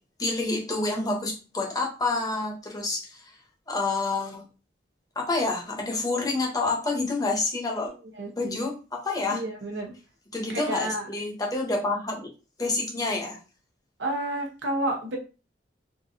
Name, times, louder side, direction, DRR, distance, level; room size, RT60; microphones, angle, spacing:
voice 1, 0.2-3.2 3.7-4.4 5.1-7.9 8.4-9.4 10.3-12.3 12.6-13.4, left 3 dB, 20° left, -1 dB, 0.9 m, -28 dB
voice 2, 8.2-8.6 9.3-9.9 10.5-11.1 14.0-15.2, right 1 dB, 75° right, 0 dB, 0.9 m, -30 dB
3.7 x 2.6 x 2.7 m, 0.33 s
head